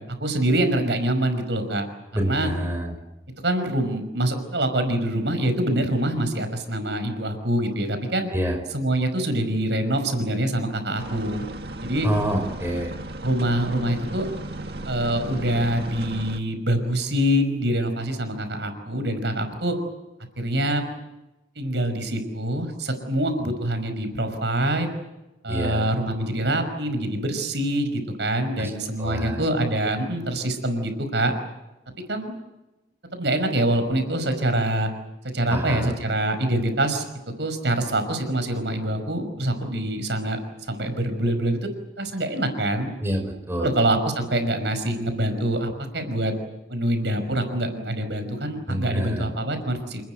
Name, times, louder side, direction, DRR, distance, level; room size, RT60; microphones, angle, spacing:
voice 1, 0.2-1.9 2.2-2.5 3.4-8.3 8.7-11.5 11.8-12.1 13.2-14.3 14.9-19.8 20.4-20.8 21.6-24.9 25.4-31.3 32.1-32.3 33.1-34.9 35.3-37.1 37.4-41.6 42.0-42.9 43.6-46.3 46.7-50.0, right 1 dB, 85° right, 8 dB, 5.6 m, -25 dB
voice 2, 2.1-2.9 8.3-8.6 12.0-13.0 25.5-26.0 28.6-28.7 29.0-29.4 35.5-35.9 43.0-43.6 48.7-49.3, equal, 15° right, 4 dB, 5.2 m, -27 dB
sound 1, 11.0-16.4, right 1 dB, 60° right, 2.0 m, -35 dB
28.5 x 20.0 x 8.1 m, 0.98 s
head